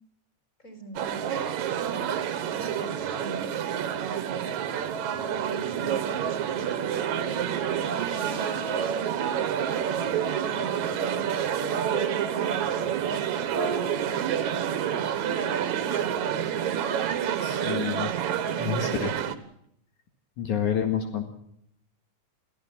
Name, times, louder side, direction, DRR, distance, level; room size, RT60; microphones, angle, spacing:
voice 1, 0.6-1.4 1.6-3.6 3.9-4.7 5.1-9.1 9.5-16.1, right 1 dB, 25° left, 6 dB, 5.1 m, -44 dB
sound 1, 1.0-19.4, right 9 dB, 70° right, 2.5 m, -28 dB
sound 2, 6.5-10.7 13.5-15.0 15.6-17.3, right 4 dB, 30° right, 1.2 m, -41 dB
voice 2, 17.4-18.1 18.6-19.1 20.4-21.2, left 8 dB, 75° left, 4 dB, 3.4 m, -28 dB
25.0 x 15.5 x 7.3 m, 0.70 s
omnidirectional pair, 3.5 m